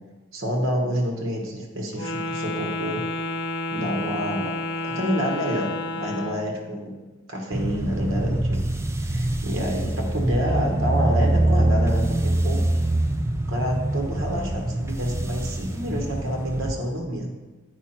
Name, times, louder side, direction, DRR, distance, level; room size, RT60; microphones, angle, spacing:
voice 1, 0.3-3.1 3.7-4.5 4.8-7.0 7.3-8.6 9.0-12.6 13.5-17.5, equal, 70° right, 1 dB, 1.3 m, -28 dB
Wind instrument woodwind instrument, 1.9-6.5, left 2 dB, 55° left, 0.7 m, -30 dB
sound 1, 7.5-16.7, right 1 dB, 10° right, 0.3 m, -24 dB
8.2 x 4.9 x 4.4 m, 1.2 s
head